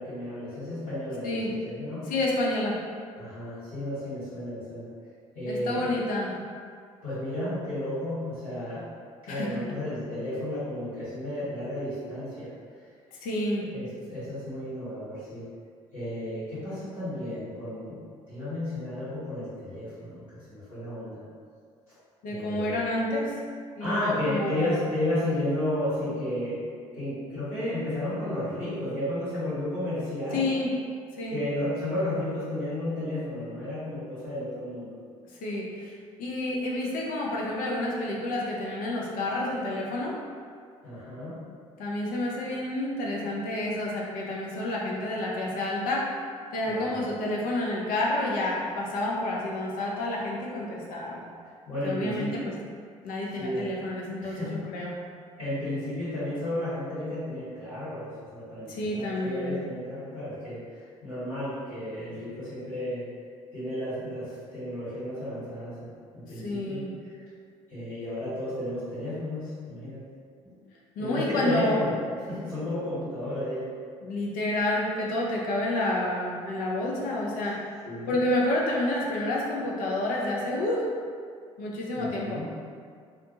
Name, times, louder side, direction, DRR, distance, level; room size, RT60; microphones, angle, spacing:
voice 1, 0.0-2.1 3.2-4.9 5.3-5.9 7.0-8.8 9.2-12.5 13.6-15.4 15.9-18.0 18.3-21.2 22.3-22.8 23.8-26.7 26.9-30.5 31.3-34.9 40.8-41.4 46.7-47.0 51.7-52.4 53.4-53.6 54.2-54.7 55.4-63.0 63.5-65.9 66.1-66.8 67.7-70.0 70.4-70.5 71.0-71.9 72.2-73.7 77.8-78.1 81.9-82.5, left 1 dB, 80° left, -15 dB, 1.5 m, -33 dB
voice 2, 2.1-2.8 5.5-6.3 9.3-9.5 13.2-13.7 22.2-23.3 23.8-24.7 30.3-30.7 31.2-31.4 35.4-40.2 41.8-46.1 46.5-51.2 51.8-52.5 53.0-54.9 58.7-59.6 66.4-66.9 71.0-71.8 74.0-77.6 78.1-80.9 81.6-82.4, left 1 dB, 55° left, -3 dB, 0.6 m, -29 dB
2.4 x 2.2 x 2.9 m, 2.1 s
figure-of-eight pair, 50°, 17 cm